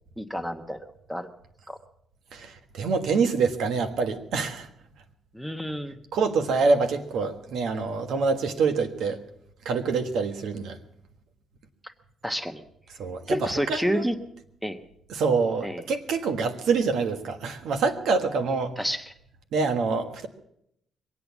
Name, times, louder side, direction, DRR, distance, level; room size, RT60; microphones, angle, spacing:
voice 1, 0.2-1.3 1.7-1.8 5.3-6.0 11.8-11.9 12.2-12.6 13.3-14.2 14.6-14.8 15.6-15.8 18.8-19.1, equal, ahead, 9 dB, 1.1 m, -30 dB
voice 2, 2.3-4.7 6.1-9.2 9.6-10.8 13.0-14.0 15.1-18.7 19.5-20.3, right 4 dB, 80° right, 7 dB, 1.5 m, -26 dB
23.0 x 8.6 x 7.1 m, 0.76 s
cardioid pair, 105°, 0 cm